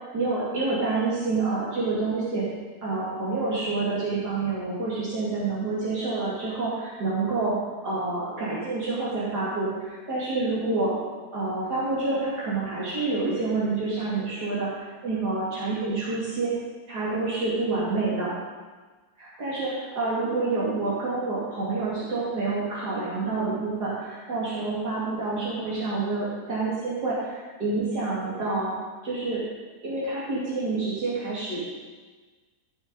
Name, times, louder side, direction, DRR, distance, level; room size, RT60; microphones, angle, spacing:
voice 1, 0.1-2.4 2.8-7.6 7.8-10.9 11.3-16.5 16.9-18.3 19.2-28.7 29.0-29.4 29.8-31.7, right 3 dB, 85° right, -8 dB, 3.2 m, -28 dB
14.0 x 6.6 x 5.3 m, 1.3 s
omnidirectional pair, 1.7 m